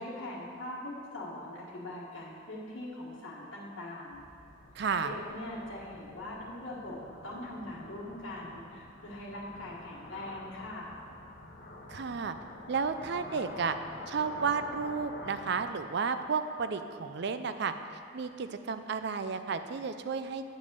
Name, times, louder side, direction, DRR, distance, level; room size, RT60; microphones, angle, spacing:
voice 1, 0.0-4.2 5.0-10.9, left 1 dB, 70° left, -7 dB, 1.4 m, -42 dB
sound 1, 4.1-15.6, left 1 dB, 50° left, 1.1 m, -48 dB
voice 2, 4.7-5.1 11.9-12.4 12.7-13.8 14.1-17.7 18.1-20.5, right 5 dB, 55° right, 10 dB, 0.4 m, -32 dB
8.8 x 5.1 x 6.7 m, 2.4 s
head